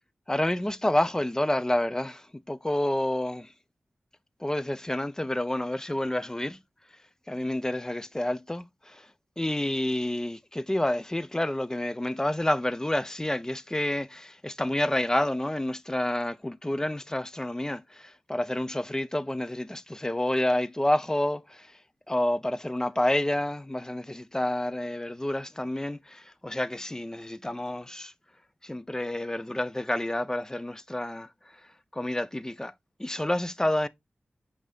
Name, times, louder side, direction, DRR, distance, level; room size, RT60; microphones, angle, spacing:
voice 1, 0.3-3.5 4.4-6.6 7.3-9.1 9.4-21.7 22.1-28.1 28.6-31.3 31.9-32.7 33.0-33.9, left 1 dB, 15° left, 0.4 m, -29 dB
5.8 x 2.7 x 3.4 m
cardioid pair, 40°, 4 cm